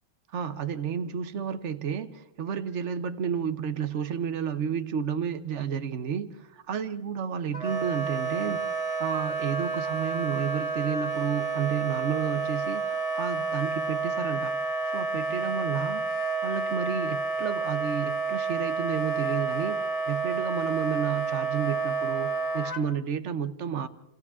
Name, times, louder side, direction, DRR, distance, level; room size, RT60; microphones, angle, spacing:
voice 1, 0.3-8.6 9.0-16.0 16.4-23.9, right 7 dB, 50° right, 10 dB, 0.8 m, -31 dB
Wind instrument woodwind instrument, 7.5-22.8, right 4 dB, 20° left, 1.4 m, -30 dB
28.5 x 27.5 x 3.6 m, 0.84 s
omnidirectional pair, 2.3 m